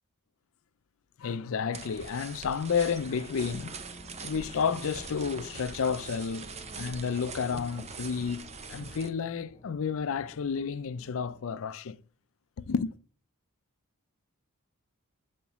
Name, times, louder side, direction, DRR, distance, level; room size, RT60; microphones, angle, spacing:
voice 1, 1.2-3.8 4.2-8.4 8.7-12.0 12.6-12.9, left 6 dB, 65° left, 0.4 m, -31 dB
sound 1, 1.7-9.1, right 5 dB, 30° right, 0.6 m, -43 dB
sound 2, 3.2-11.4, left 1 dB, 30° left, 0.7 m, -51 dB
7.1 x 4.6 x 3.0 m
head